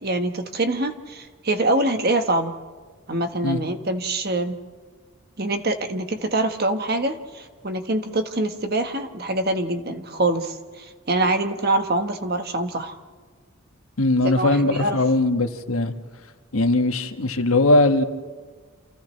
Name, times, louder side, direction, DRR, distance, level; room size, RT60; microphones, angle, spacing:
voice 1, 0.0-2.5 3.1-4.6 5.4-13.0 14.2-15.0, right 2 dB, 45° right, 1.3 m, -24 dB
voice 2, 14.0-15.9 16.5-18.0, left 2 dB, 80° left, 1.4 m, -20 dB
28.5 x 28.0 x 3.3 m
head